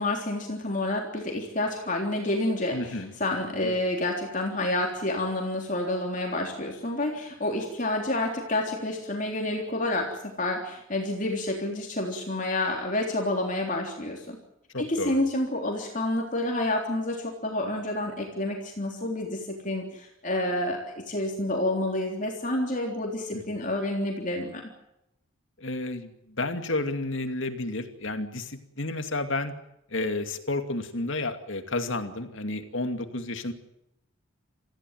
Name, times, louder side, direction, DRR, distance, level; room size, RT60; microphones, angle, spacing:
voice 1, 0.0-14.4 14.8-24.7, left 1 dB, 40° left, 1 dB, 3.6 m, -29 dB
voice 2, 2.7-3.1 3.6-3.7 14.7-15.2 23.3-23.4 25.6-29.5 29.9-33.5, left 2 dB, 65° left, 7 dB, 2.5 m, -31 dB
27.0 x 15.5 x 9.3 m, 0.84 s
head